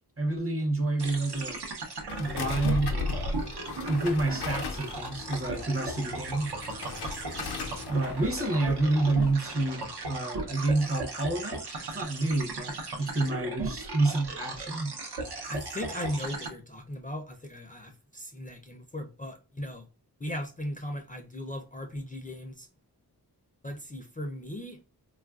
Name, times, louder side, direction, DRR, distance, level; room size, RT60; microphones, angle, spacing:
voice 1, 0.2-1.6 2.2-3.5 3.9-6.5 7.9-11.6 11.9-14.9, right 2 dB, 35° right, 0.7 m, -29 dB
sound 1, 1.0-16.5, right 3 dB, 80° right, 0.7 m, -37 dB
sound 2, 2.1-9.3, left 4 dB, 90° left, 0.6 m, -37 dB
voice 2, 15.5-19.9 20.2-22.7 23.6-24.8, left 1 dB, 20° left, 0.4 m, -37 dB
3.3 x 2.4 x 2.3 m
wide cardioid pair, 105°, 39 cm